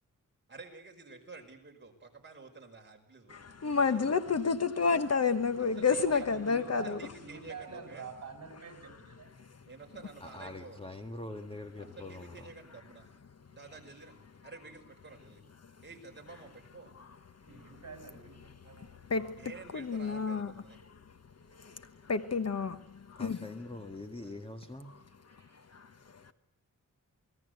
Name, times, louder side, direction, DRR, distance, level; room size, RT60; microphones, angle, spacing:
voice 1, 0.5-4.1 5.8-6.2 6.8-8.1 9.7-10.8 11.8-13.1 13.5-14.2 14.4-15.4 15.8-16.9 19.4-20.8 24.2-24.4, right 3 dB, 35° right, 5.4 m, -50 dB
voice 2, 3.3-7.1 8.9-9.0 9.4-9.7 12.7-12.8 13.2-13.6 14.4-14.5 15.6-15.8 16.9-17.8 18.5-23.5 24.9-25.0 25.3-26.3, left 5 dB, 50° left, 1.3 m, -32 dB
voice 3, 6.3-6.9 7.2-9.3 17.5-19.1 25.4-25.8, right 5 dB, 50° right, 6.4 m, -47 dB
voice 4, 10.2-12.5 23.2-24.9, left 2 dB, 15° left, 1.7 m, -44 dB
28.5 x 20.0 x 8.1 m
wide cardioid pair, 170°, 33 cm